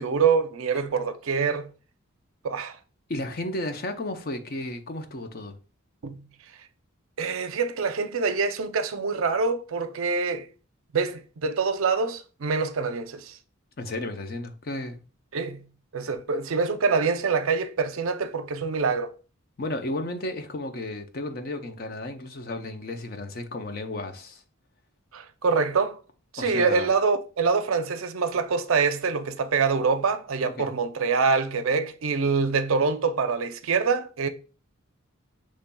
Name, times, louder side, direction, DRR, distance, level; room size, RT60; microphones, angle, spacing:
voice 1, 0.0-1.7 2.4-2.8 6.0-6.3 7.2-10.5 10.9-13.4 15.3-15.7 15.9-19.1 25.1-26.0 26.3-34.3, right 5 dB, 70° right, 0.5 m, -25 dB
voice 2, 3.1-5.6 13.8-15.0 19.6-24.4 26.4-26.9 30.4-30.7, left 2 dB, 45° left, 0.6 m, -33 dB
6.7 x 3.1 x 2.2 m
head